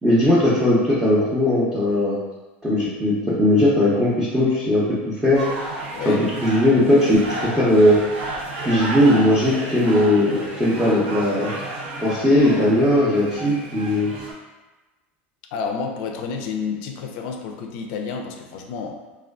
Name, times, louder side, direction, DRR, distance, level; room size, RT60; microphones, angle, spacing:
voice 1, 0.0-2.2 2.6-5.4 6.1-6.2 6.4-8.0 8.6-11.5 12.0-14.1, left 1 dB, 10° right, -11 dB, 0.6 m, -18 dB
sound 1, 5.3-14.3, right 2 dB, 70° right, 0.7 m, -32 dB
voice 2, 5.9-6.2 15.5-19.1, left 5 dB, 65° left, 3 dB, 0.3 m, -30 dB
2.4 x 2.3 x 2.2 m, 1.2 s
hypercardioid pair, 100°, 6 cm